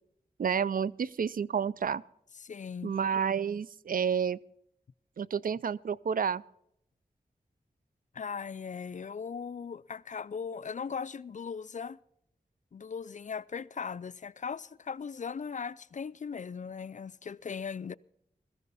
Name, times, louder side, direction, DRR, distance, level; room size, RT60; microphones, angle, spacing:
voice 1, 0.4-2.0 2.8-4.4 5.2-6.4, right 7 dB, 60° right, 0.4 m, -30 dB
voice 2, 2.4-2.9 8.1-12.0 12.7-18.0, left 6 dB, 50° left, 0.4 m, -38 dB
16.0 x 14.5 x 4.1 m
cardioid pair, 40°, 16 cm